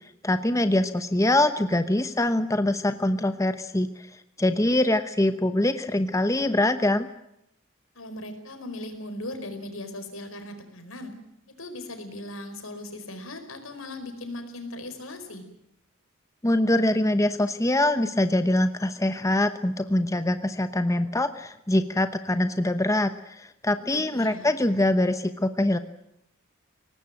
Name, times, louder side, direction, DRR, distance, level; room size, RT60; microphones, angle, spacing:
voice 1, 0.2-4.1 4.4-7.1 16.4-25.8, left 1 dB, 15° left, 10 dB, 0.9 m, -24 dB
voice 2, 7.9-11.1 11.6-15.4 23.8-24.4, left 1 dB, 80° left, 7 dB, 4.9 m, -38 dB
23.0 x 19.0 x 9.1 m, 0.79 s
head